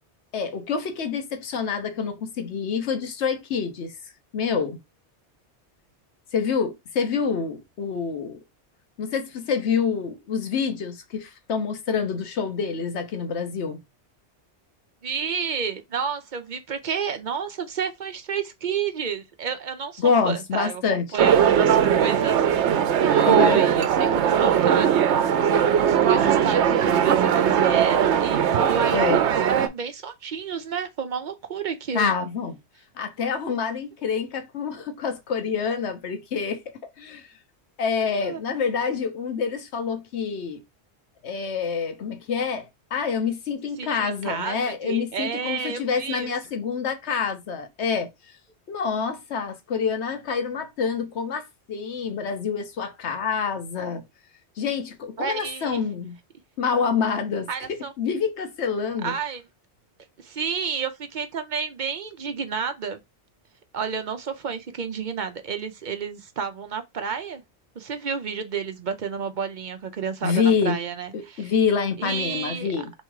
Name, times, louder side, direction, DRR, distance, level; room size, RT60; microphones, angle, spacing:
voice 1, 0.3-3.9 4.3-4.8 6.3-8.4 9.0-13.8 20.0-21.1 23.3-23.6 28.9-29.2 31.9-32.6 33.0-36.6 37.0-37.3 37.8-40.6 41.2-48.1 48.7-54.0 54.6-56.2 56.6-59.2 70.2-70.8 71.1-72.9, left 6 dB, 80° left, 1.1 m, -27 dB
voice 2, 15.0-22.8 23.1-32.1 38.1-38.4 43.8-46.3 55.2-55.8 57.5-57.9 59.0-59.4 60.2-63.0 63.7-67.4 67.8-71.5 72.0-72.7, right 6 dB, 50° right, 0.7 m, -31 dB
sound 1, 21.2-29.7, right 8 dB, 85° right, 0.9 m, -19 dB
3.5 x 3.1 x 4.7 m
omnidirectional pair, 1.1 m